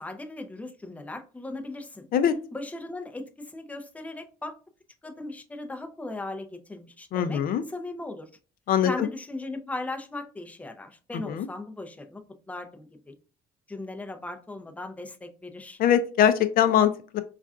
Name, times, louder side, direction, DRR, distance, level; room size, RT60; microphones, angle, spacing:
voice 1, 0.0-2.1 2.5-4.6 5.0-7.4 7.7-8.3 8.8-13.1 13.7-15.8, left 2 dB, 10° left, 0.6 m, -38 dB
voice 2, 7.1-7.6 8.7-9.1 11.3-11.5 15.8-17.2, left 9 dB, 60° left, 0.4 m, -22 dB
5.3 x 2.4 x 2.4 m
cardioid pair, 110°, 17 cm